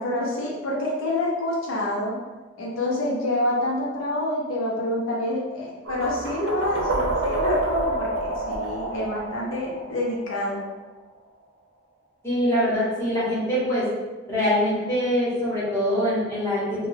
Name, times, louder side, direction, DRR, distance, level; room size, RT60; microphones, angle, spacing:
voice 1, 0.0-2.1 2.6-10.6, left 1 dB, 80° left, -4 dB, 0.6 m, -27 dB
sound 1, 5.9-10.8, right 2 dB, 80° right, 0.4 m, -28 dB
voice 2, 12.2-13.9 14.3-16.9, equal, 15° left, -9 dB, 0.9 m, -24 dB
2.2 x 2.2 x 3.2 m, 1.2 s
head